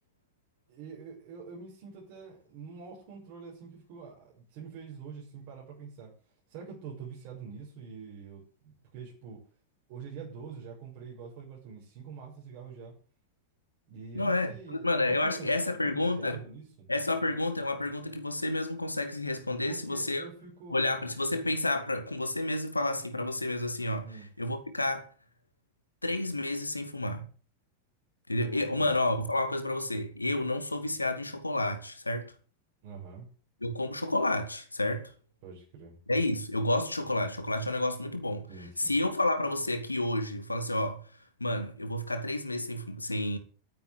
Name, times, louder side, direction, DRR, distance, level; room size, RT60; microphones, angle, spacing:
voice 1, 0.7-6.2 6.5-9.5 9.9-13.0 13.9-16.9 19.7-20.8 24.0-24.3 28.4-28.9 32.8-33.3 35.4-36.0 38.5-39.0, right 5 dB, 45° right, 7.4 m, -45 dB
voice 2, 14.1-16.4 16.9-20.3 20.7-25.1 26.0-27.3 28.3-32.3 33.6-35.1 36.1-38.5 38.8-41.1 41.4-43.4, left 2 dB, 85° left, 2.4 m, -30 dB
12.0 x 10.0 x 8.4 m
figure-of-eight pair, 90°, 0 cm